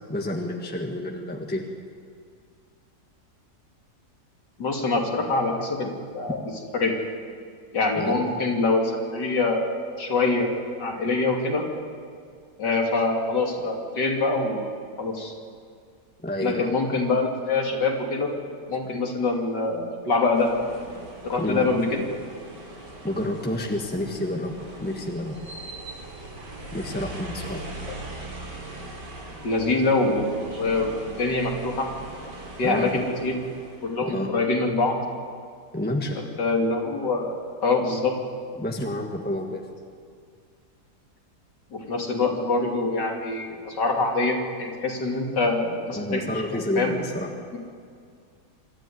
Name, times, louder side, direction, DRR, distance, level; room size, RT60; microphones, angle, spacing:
voice 1, 0.1-1.6 7.9-8.1 16.2-16.7 21.4-21.7 23.0-25.4 26.7-27.7 32.6-33.0 34.0-34.3 35.7-36.2 38.6-39.6 45.9-47.3, left 1 dB, 5° left, 1 dB, 1.5 m, -29 dB
voice 2, 4.6-6.4 6.7-6.9 7.7-10.5 10.8-11.6 12.6-14.7 15.0-15.3 16.4-18.3 18.7-20.6 21.2-22.0 29.4-31.9 32.6-33.4 33.8-35.0 36.1-37.3 37.6-38.1 41.7-46.2 46.7-46.9, left 3 dB, 80° left, 1 dB, 3.3 m, -24 dB
sound 1, 20.3-34.0, right 2 dB, 80° right, 3.8 m, -40 dB
25.5 x 13.5 x 9.5 m, 2.2 s
omnidirectional pair, 1.8 m